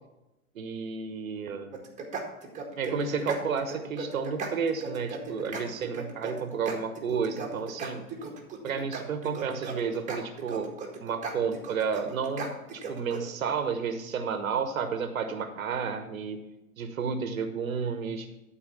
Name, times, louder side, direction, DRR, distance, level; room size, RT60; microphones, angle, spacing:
voice 1, 0.5-1.8 2.8-8.0 8.6-10.7 11.0-16.4 16.8-18.3, right 6 dB, 70° right, 8 dB, 1.2 m, -31 dB
sound 1, 1.7-13.2, right 5 dB, 15° right, 1.8 m, -37 dB
12.0 x 4.6 x 7.2 m, 0.97 s
figure-of-eight pair, 110°, 43 cm